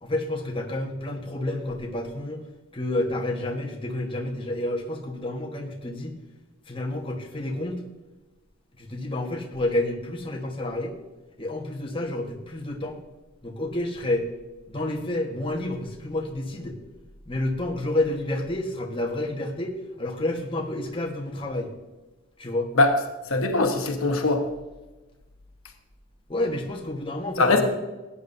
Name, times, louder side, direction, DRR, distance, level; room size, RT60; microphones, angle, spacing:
voice 1, 0.0-2.4 2.7-6.2 6.7-7.8 8.8-10.9 11.4-13.0 13.4-14.3 14.7-16.8 17.3-21.7 22.4-22.7 26.3-27.7, left 1 dB, 25° left, 1 dB, 1.3 m, -29 dB
voice 2, 23.3-24.4 27.4-27.7, left 2 dB, 75° left, 5 dB, 1.2 m, -21 dB
16.5 x 9.7 x 2.7 m, 1.1 s
head